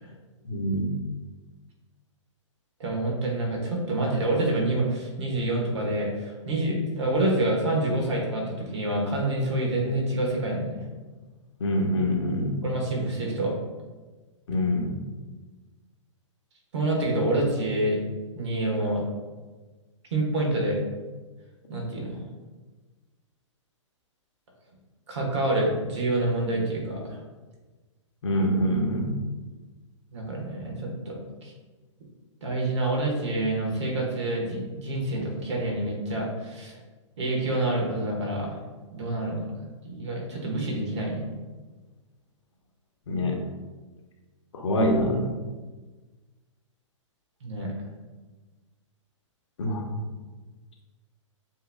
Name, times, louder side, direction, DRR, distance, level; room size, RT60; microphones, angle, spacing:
voice 1, 0.4-0.9 11.6-12.6 14.5-15.0 28.2-29.2 43.1-43.4 44.5-45.3 49.6-50.0, equal, 65° left, 1 dB, 1.0 m, -25 dB
voice 2, 2.8-10.8 12.6-13.6 16.7-18.0 18.3-19.0 20.1-20.8 21.7-22.2 25.1-27.1 30.1-31.5 32.4-36.7 37.2-38.6 38.9-41.2 47.4-47.7, right 1 dB, 60° right, -1 dB, 1.5 m, -27 dB
7.3 x 2.9 x 2.3 m, 1.3 s
figure-of-eight pair, 115°, 16 cm